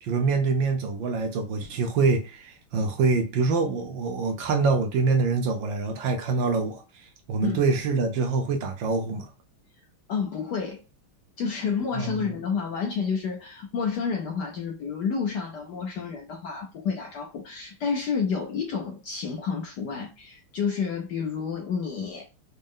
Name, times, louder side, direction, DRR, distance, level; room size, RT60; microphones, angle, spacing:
voice 1, 0.0-6.8 7.3-9.3 11.9-12.3, right 4 dB, 70° right, 1.2 m, -25 dB
voice 2, 10.1-10.8 11.4-22.2, left 6 dB, 70° left, 1.0 m, -30 dB
4.2 x 2.1 x 3.7 m
omnidirectional pair, 2.4 m